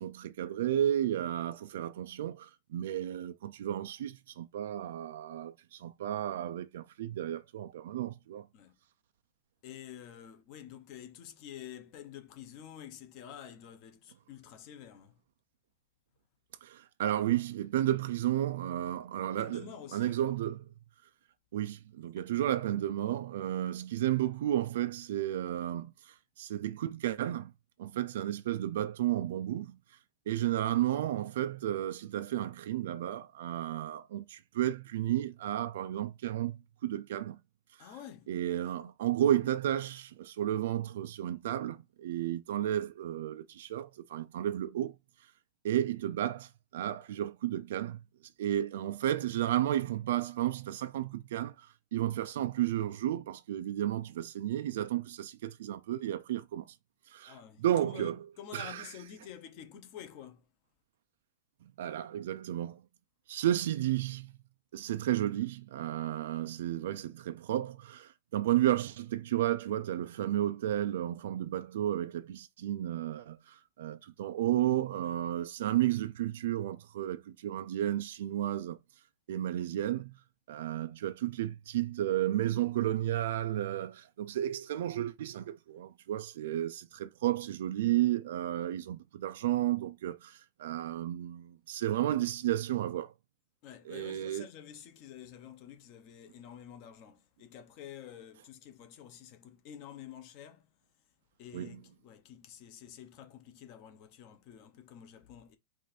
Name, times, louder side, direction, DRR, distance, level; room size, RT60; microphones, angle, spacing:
voice 1, 0.0-8.5 16.6-19.7 19.9-20.6 21.5-27.5 27.8-29.8 30.3-37.4 37.8-37.9 38.3-44.9 45.6-48.0 48.4-56.8 57.1-58.2 58.5-58.9 61.8-62.8 63.3-64.3 64.7-78.8 79.3-80.1 80.5-93.1 93.9-94.5 101.5-101.8, right 12 dB, 65° right, 0.4 m, -32 dB
voice 2, 9.6-15.2 19.2-20.4 22.2-22.3 37.8-38.3 38.6-38.9 57.2-60.5 75.0-75.2 93.6-100.7 101.4-105.6, left 9 dB, 35° left, 0.8 m, -49 dB
4.8 x 2.6 x 4.2 m
supercardioid pair, 175°, 0 cm